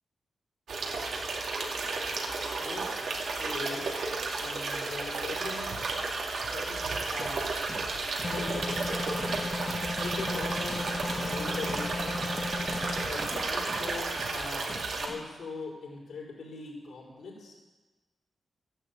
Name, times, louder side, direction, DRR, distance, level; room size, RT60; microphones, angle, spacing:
sound 1, 0.7-15.1, right 3 dB, 70° right, 2.5 m, -33 dB
voice 1, 2.6-4.0 4.4-5.7 6.4-7.6 8.1-8.8 10.0-12.0 13.0-17.5, left 4 dB, 70° left, -3 dB, 5.5 m, -41 dB
sound 2, 7.2-15.2, right 1 dB, 5° right, 2.0 m, -46 dB
sound 3, 8.2-13.1, left 3 dB, 25° left, 0.4 m, -35 dB
13.0 x 11.0 x 8.6 m, 1.2 s
wide cardioid pair, 150°, 0 cm